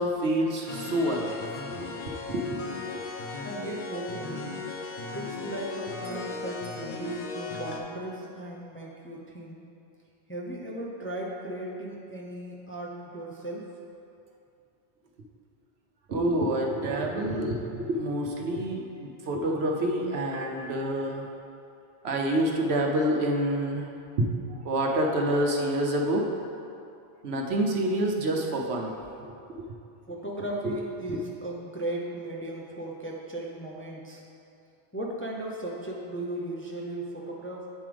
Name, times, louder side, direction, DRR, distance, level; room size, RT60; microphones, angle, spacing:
voice 1, 0.0-1.8 2.1-2.6 2.9-3.0 16.1-21.2 22.0-23.9 24.2-26.3 27.2-28.9 30.6-30.7 31.1-31.2, right 1 dB, 70° right, 1 dB, 1.1 m, -27 dB
sound 1, 0.7-7.8, left 4 dB, 50° left, 0.8 m, -37 dB
voice 2, 3.4-4.7 5.1-9.7 10.3-13.7 29.2-29.3 30.1-34.2 34.9-37.7, right 1 dB, 15° left, -3 dB, 0.6 m, -36 dB
8.3 x 7.3 x 3.4 m, 2.6 s
omnidirectional pair, 1.1 m